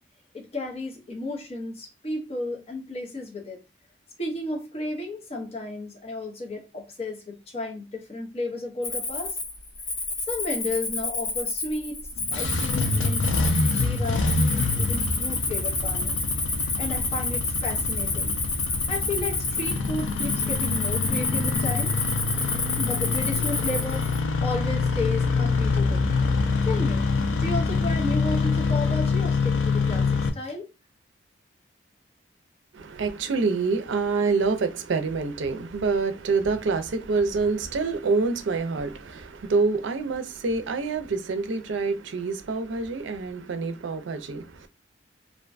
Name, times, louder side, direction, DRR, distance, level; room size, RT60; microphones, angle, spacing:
voice 1, 0.3-3.6 4.2-9.4 10.3-12.0 12.3-13.3 13.7-16.2 16.6-18.4 18.9-21.9 22.7-24.0 24.4-26.1 26.6-27.0 27.4-30.7, left 2 dB, 30° left, 0.6 m, -33 dB
Cricket, 8.8-24.2, left 3 dB, 75° left, 1.3 m, -29 dB
Engine starting, 12.2-30.3, left 4 dB, 90° left, 0.5 m, -26 dB
voice 2, 32.7-44.7, right 4 dB, 80° right, 0.4 m, -26 dB
2.5 x 2.1 x 2.4 m
head